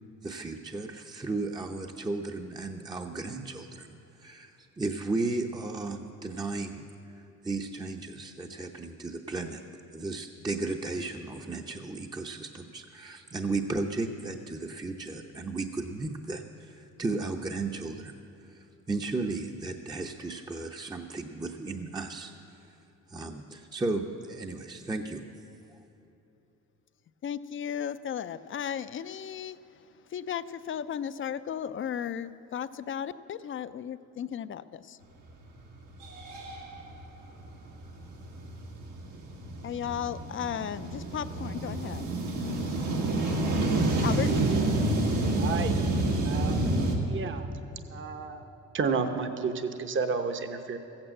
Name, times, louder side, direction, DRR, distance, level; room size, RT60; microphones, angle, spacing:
voice 1, 0.2-6.9 7.2-9.6 9.9-18.2 18.4-22.3 23.1-25.2, right 3 dB, 15° right, 3 dB, 0.7 m, -35 dB
voice 2, 27.2-29.6 30.1-35.0 39.6-42.1 44.0-44.3, left 9 dB, 45° left, 14 dB, 0.5 m, -35 dB
sound 1, 35.4-35.5 35.9-46.9, right 2 dB, 85° right, 2.0 m, -29 dB
voice 3, 45.4-45.8 46.2-46.7 47.1-47.5 47.9-48.5 48.7-50.8, right 5 dB, 40° right, 8 dB, 0.9 m, -31 dB
14.5 x 8.9 x 7.7 m, 2.9 s
cardioid pair, 90°, 30 cm